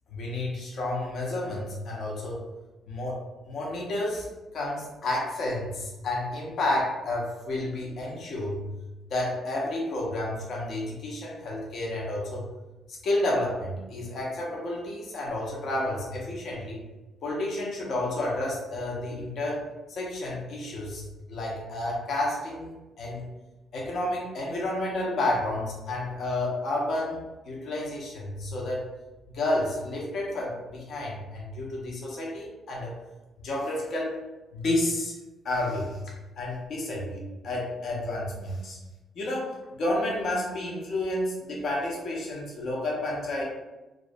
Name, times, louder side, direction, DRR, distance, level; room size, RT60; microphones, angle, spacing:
voice 1, 0.1-2.5 2.9-4.3 4.5-8.7 9.1-12.4 12.9-16.8 17.2-23.2 23.7-28.9 29.3-33.0 33.4-34.2 34.5-35.1 35.4-36.0 36.4-38.8 39.2-43.4, left 1 dB, 60° left, -3 dB, 0.6 m, -31 dB
2.5 x 2.0 x 2.5 m, 1.1 s
cardioid pair, 90°, 0 cm